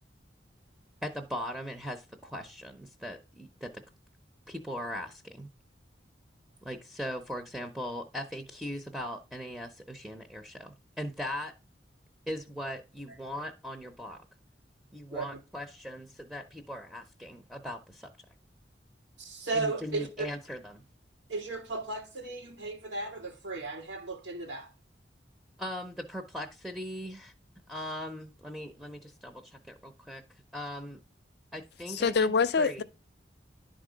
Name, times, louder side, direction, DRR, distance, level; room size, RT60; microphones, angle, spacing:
voice 1, 1.0-3.7 4.5-5.5 6.6-11.5 12.3-14.3 14.9-18.1 19.5-20.8 25.6-27.3 27.7-30.2 30.5-31.0 31.5-32.3 32.6-32.8, equal, 5° right, 0.6 m, -39 dB
voice 2, 19.2-20.3 21.3-24.7, right 3 dB, 90° right, 1.7 m, -35 dB
voice 3, 31.9-32.8, left 4 dB, 65° left, 0.5 m, -25 dB
10.5 x 3.7 x 5.0 m
head